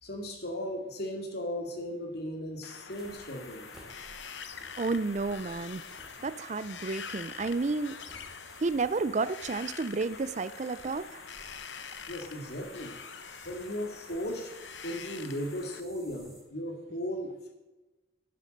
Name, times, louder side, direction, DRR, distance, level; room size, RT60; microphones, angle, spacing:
voice 1, 0.0-3.6 12.1-12.9 13.4-14.5 14.8-17.5, equal, 60° left, 3 dB, 2.5 m, -36 dB
Wind, 2.6-15.8, left 6 dB, 75° left, 1.0 m, -45 dB
sound 1, 2.9-16.4, right 1 dB, ahead, 2.6 m, -55 dB
voice 2, 4.8-5.8 6.2-8.0 8.6-11.1, right 3 dB, 40° right, 14 dB, 0.5 m, -31 dB
11.0 x 10.5 x 6.6 m, 1.1 s
head